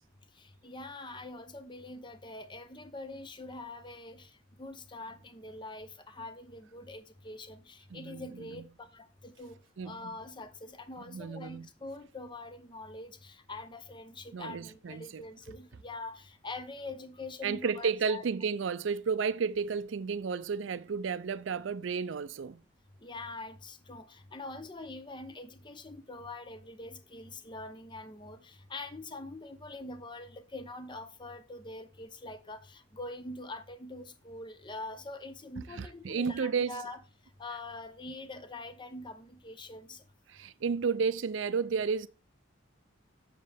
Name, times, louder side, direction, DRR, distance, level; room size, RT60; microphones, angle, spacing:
voice 1, 0.3-9.6 9.8-18.2 23.0-37.0 37.4-40.0, left 2 dB, 25° left, 0.8 m, -44 dB
voice 2, 7.9-8.5 9.8-10.0 11.1-11.7 14.3-15.2 17.4-22.6 35.8-36.8 40.3-42.1, right 5 dB, 80° right, 0.4 m, -32 dB
7.5 x 6.6 x 3.4 m
head